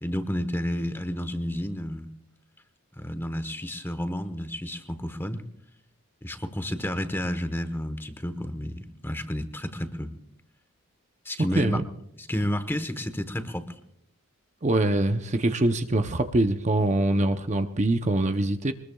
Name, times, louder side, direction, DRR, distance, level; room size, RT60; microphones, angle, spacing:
voice 1, 0.0-2.1 3.0-5.4 6.2-10.1 11.2-11.8 12.1-13.7, left 1 dB, 10° left, 9 dB, 1.0 m, -31 dB
voice 2, 14.6-18.7, right 2 dB, 30° right, 7 dB, 0.7 m, -24 dB
23.0 x 20.5 x 2.3 m, 0.74 s
head